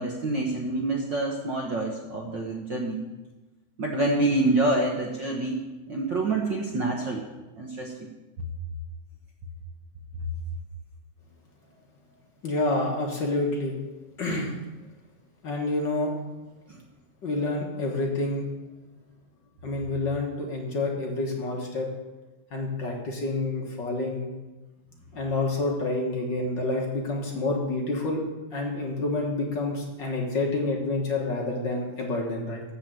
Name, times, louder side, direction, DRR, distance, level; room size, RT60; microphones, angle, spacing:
voice 1, 0.0-3.0 3.8-7.3 7.6-7.9 16.7-16.8, right 2 dB, 65° right, 0 dB, 1.1 m, -27 dB
voice 2, 12.4-13.7 14.2-14.5 15.4-16.1 17.2-18.5 19.6-21.9 22.5-24.3 25.1-28.2 28.5-32.6, left 2 dB, 45° left, -1 dB, 1.7 m, -28 dB
13.5 x 4.6 x 7.6 m, 1.2 s
omnidirectional pair, 3.4 m